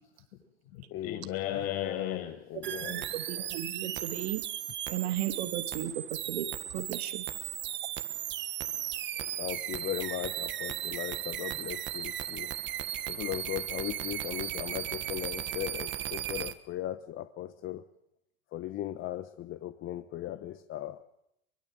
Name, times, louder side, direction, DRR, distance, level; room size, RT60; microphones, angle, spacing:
voice 1, 0.3-2.5, left 10 dB, 65° left, 5 dB, 6.4 m, -39 dB
voice 2, 0.9-2.2 2.5-3.0 3.4-3.5 9.2-12.5 13.1-17.8 18.5-21.0, left 14 dB, 35° left, 11 dB, 1.2 m, -37 dB
sound 1, 2.6-16.5, right 12 dB, 35° right, 1.5 m, -36 dB
voice 3, 2.7-4.5 4.9-7.3, right 12 dB, 70° right, 9 dB, 2.4 m, -35 dB
23.5 x 21.5 x 7.9 m, 0.82 s
hypercardioid pair, 105°, 33 cm